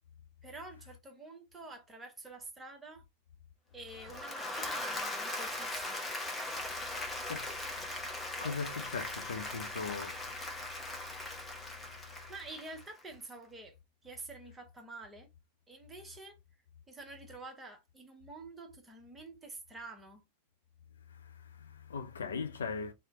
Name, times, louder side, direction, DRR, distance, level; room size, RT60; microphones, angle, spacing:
voice 1, 0.4-3.0 3.7-6.0 12.3-13.8 14.0-15.3 15.7-16.4 16.9-20.2, right 2 dB, 15° right, 0.9 m, -48 dB
Applause / Crowd, 3.9-13.1, left 2 dB, 15° left, 0.8 m, -40 dB
voice 2, 6.8-12.3 21.2-22.9, left 5 dB, 65° left, 0.4 m, -42 dB
3.0 x 2.1 x 3.4 m
figure-of-eight pair, 90°, 0 cm